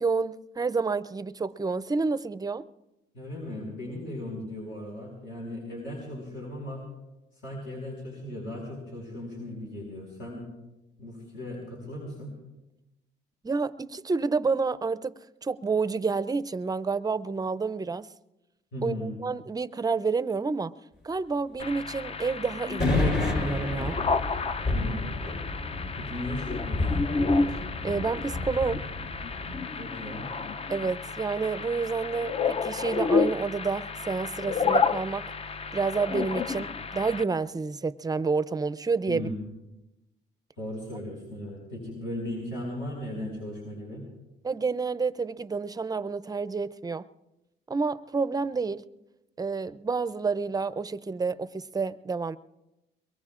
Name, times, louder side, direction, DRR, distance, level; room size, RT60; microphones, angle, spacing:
voice 1, 0.0-2.6 13.4-18.1 18.8-20.7 21.0-24.0 27.5-28.8 30.7-35.3 35.7-39.3 44.4-47.0 47.7-48.8 49.4-52.4, right 4 dB, 20° right, 14 dB, 0.5 m, -29 dB
voice 2, 3.1-6.9 7.3-10.4 11.0-12.4 18.7-19.2 24.7-25.2 26.0-27.0 29.7-30.3 39.1-39.3 40.6-44.1, left 1 dB, 70° left, -3 dB, 5.2 m, -37 dB
sound 1, 21.6-37.2, left 4 dB, 30° left, 0.5 m, -31 dB
sound 2, 22.8-29.6, left 2 dB, 55° left, 7.1 m, -30 dB
23.0 x 22.5 x 2.5 m, 0.97 s
cardioid pair, 90°, 20 cm